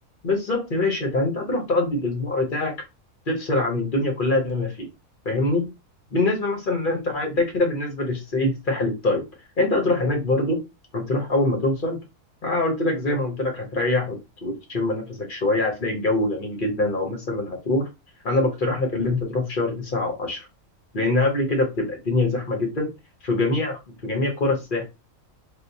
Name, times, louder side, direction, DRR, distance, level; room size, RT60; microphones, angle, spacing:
voice 1, 0.2-2.7 3.3-4.9 5.2-5.7 6.1-9.2 9.6-10.6 10.9-12.0 12.4-17.9 18.2-20.5 20.9-22.9 23.2-24.8, left 2 dB, 45° left, 3 dB, 1.0 m, -24 dB
3.5 x 2.4 x 2.7 m, 0.24 s
omnidirectional pair, 1.4 m